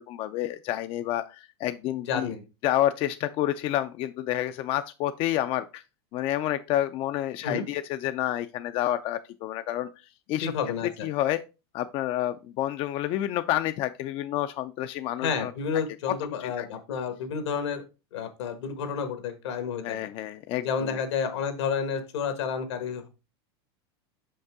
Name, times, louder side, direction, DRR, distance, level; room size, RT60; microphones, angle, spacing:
voice 1, 0.0-2.3 2.6-5.8 6.1-9.9 10.3-10.5 11.0-11.4 11.7-15.5 16.1-16.2 16.4-16.7 19.8-21.0, left 13 dB, 40° left, 0.4 m, -29 dB
voice 2, 2.1-2.4 7.4-7.7 10.4-11.1 15.2-17.8 18.1-20.0 20.6-23.1, left 6 dB, 80° left, 1.4 m, -30 dB
5.8 x 5.3 x 3.6 m
supercardioid pair, 125°, 14 cm